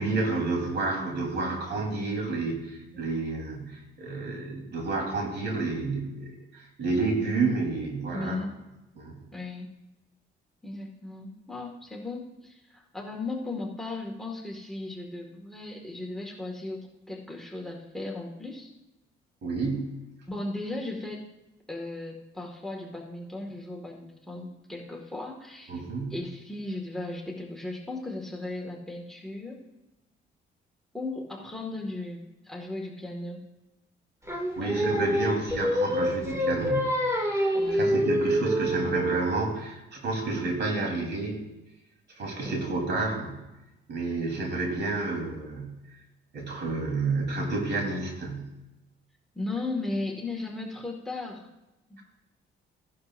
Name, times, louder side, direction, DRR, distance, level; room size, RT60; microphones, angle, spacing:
voice 1, 0.0-8.4 9.0-9.2 19.4-20.0 25.7-26.2 34.3-37.0 37.3-41.4 42.2-43.4 43.9-45.8 46.3-48.5, right 3 dB, 60° right, 1 dB, 3.8 m, -30 dB
voice 2, 8.1-8.5 9.3-9.7 10.6-18.7 20.3-21.3 21.7-25.8 26.1-29.6 30.9-33.4 34.6-34.8 37.5-38.0 42.4-42.6 42.9-43.0 49.3-51.5 51.9-52.0, left 2 dB, ahead, 1 dB, 1.9 m, -36 dB
Singing, 34.3-39.5, equal, 15° right, 2.2 m, -26 dB
16.0 x 11.5 x 2.6 m, 0.99 s
cardioid pair, 90°, 20 cm